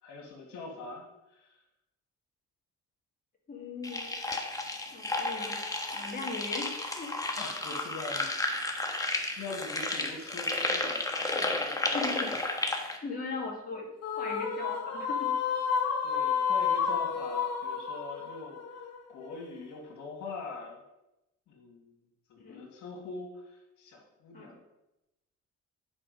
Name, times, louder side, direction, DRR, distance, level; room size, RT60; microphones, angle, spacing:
voice 1, 0.0-1.1 1.3-1.6 7.4-8.3 9.4-12.1 16.0-20.8 21.5-21.9 22.3-24.6, left 3 dB, 75° left, -1 dB, 2.1 m, -43 dB
voice 2, 3.5-4.2 4.9-5.6 5.9-7.1 11.9-12.4 13.0-13.9 14.1-15.3 22.4-22.7 24.3-24.6, left 3 dB, 30° left, -2 dB, 2.3 m, -38 dB
sound 1, 3.8-13.0, left 2 dB, 10° left, 1.3 m, -32 dB
sound 2, 14.0-19.4, left 7 dB, 55° left, 1.5 m, -30 dB
8.7 x 4.9 x 5.3 m, 0.93 s
cardioid pair, 90°, 30 cm